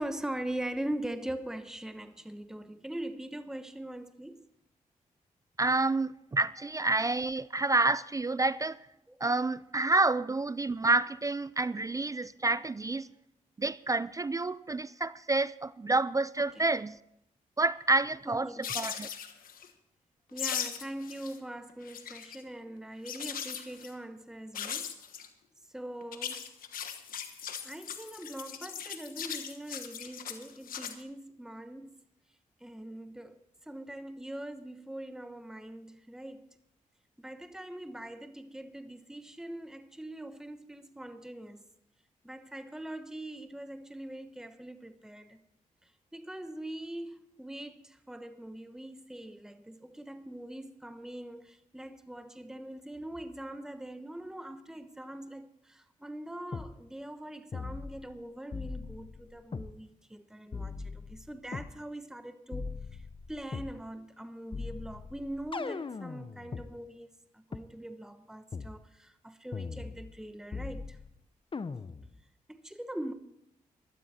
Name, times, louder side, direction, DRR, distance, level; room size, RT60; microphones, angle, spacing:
voice 1, 0.0-4.5 16.6-16.7 18.3-18.7 20.3-25.0 25.7-26.5 27.6-31.9 32.6-33.4 33.7-36.5 37.2-41.6 42.2-45.4 46.1-62.7 63.3-71.0 72.5-73.1, right 1 dB, 5° right, 1.0 m, -42 dB
voice 2, 5.6-8.8 9.2-13.1 13.6-17.0 17.6-19.1, right 2 dB, 25° right, 0.4 m, -29 dB
sound 1, 18.6-19.7 20.4-21.4 21.7-22.4 23.1-23.9 24.5-25.3 26.0-30.9, left 8 dB, 90° left, 1.2 m, -39 dB
sound 2, 56.5-56.7 57.5-58.2 58.5-59.7 60.5-61.7 62.5-63.7 64.5-66.7 67.5-67.6 68.5-68.7 69.5-70.2 70.5-71.1 71.5-72.1, left 4 dB, 35° left, 0.8 m, -39 dB
15.5 x 12.5 x 4.3 m
cardioid pair, 60°, 14 cm